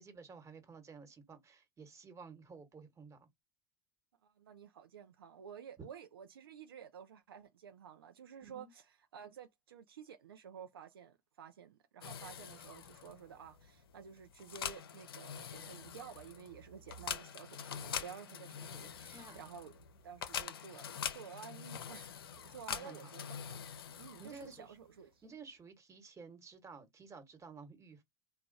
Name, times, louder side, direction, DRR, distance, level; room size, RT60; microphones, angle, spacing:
voice 1, 0.0-3.3 8.4-8.7 19.1-19.4 22.7-23.1 24.2-24.8 25.2-28.0, right 5 dB, 25° right, 1.3 m, -53 dB
voice 2, 4.2-8.8 9.1-19.7 20.0-25.2, right 7 dB, 85° right, 0.5 m, -52 dB
sound 1, 12.0-24.7, left 8 dB, 85° left, 0.5 m, -45 dB
3.2 x 2.2 x 3.9 m
hypercardioid pair, 90°, 12 cm